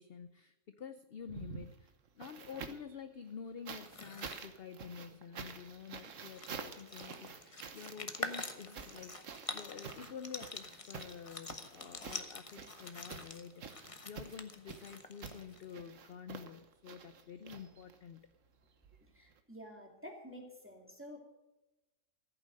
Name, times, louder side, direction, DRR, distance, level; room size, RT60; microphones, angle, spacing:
voice 1, 0.0-9.1 9.5-18.3, left 7 dB, 55° left, 10 dB, 0.7 m, -49 dB
sound 1, 1.2-3.0 3.7-18.2 19.3-19.4, right 6 dB, 55° right, 1.4 m, -49 dB
sound 2, 3.7-4.4 5.9-6.0 6.2-15.7, left 3 dB, 25° left, 1.0 m, -46 dB
voice 2, 19.1-21.2, equal, 10° right, 1 dB, 2.7 m, -50 dB
15.0 x 9.0 x 6.5 m, 1.0 s
omnidirectional pair, 1.7 m